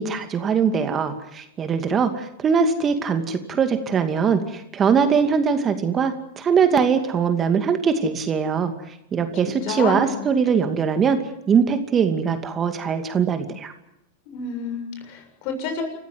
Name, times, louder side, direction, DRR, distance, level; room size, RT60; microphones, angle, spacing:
voice 1, 0.0-8.7 9.1-11.2 11.5-13.7, right 6 dB, 25° right, 7 dB, 2.4 m, -21 dB
voice 2, 9.1-10.1 14.3-15.8, left 4 dB, 55° left, 6 dB, 7.2 m, -30 dB
28.0 x 15.0 x 9.4 m, 0.81 s
hypercardioid pair, 105°, 0 cm